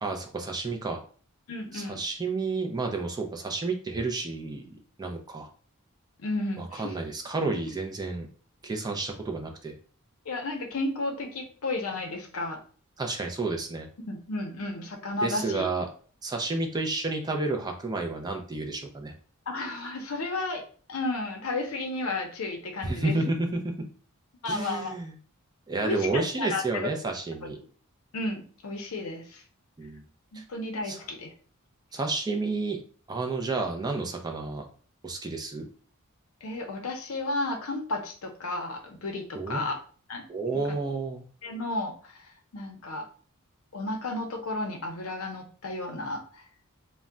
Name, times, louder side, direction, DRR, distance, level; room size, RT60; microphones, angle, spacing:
voice 1, 0.0-1.0 1.7-5.5 6.6-8.3 8.6-9.7 13.0-13.9 15.2-15.9 16.2-19.1 22.8-23.9 24.5-25.1 25.7-27.6 29.8-30.0 30.3-30.4 30.8-31.0 31.9-32.8 33.1-34.7 35.0-35.7 39.4-39.6 40.3-41.2, right 3 dB, 20° right, 3 dB, 0.3 m, -31 dB
voice 2, 1.5-2.0 6.2-6.9 10.3-12.6 14.0-15.7 19.5-20.6 20.9-23.1 24.4-25.0 25.8-26.9 28.1-29.4 30.3-31.3 36.4-39.8 40.1-40.2 41.4-43.1 43.7-46.2, left 2 dB, 70° left, 4 dB, 0.6 m, -33 dB
2.2 x 2.1 x 3.6 m, 0.43 s
head